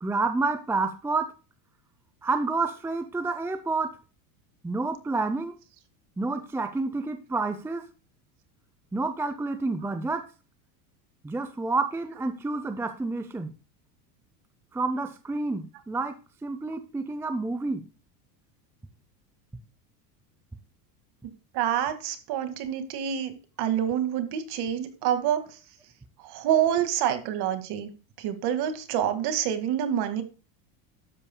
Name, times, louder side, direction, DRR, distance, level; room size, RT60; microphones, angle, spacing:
voice 1, 0.0-1.3 2.2-3.9 4.6-5.5 6.2-7.9 8.9-10.2 11.2-13.5 14.7-16.2 16.4-17.8, right 3 dB, 5° right, 9 dB, 0.6 m, -29 dB
voice 2, 21.5-25.4 26.3-27.9 28.2-30.2, right 10 dB, 50° right, 9 dB, 2.0 m, -27 dB
12.0 x 8.5 x 2.2 m, 0.34 s
supercardioid pair, 115°, 49 cm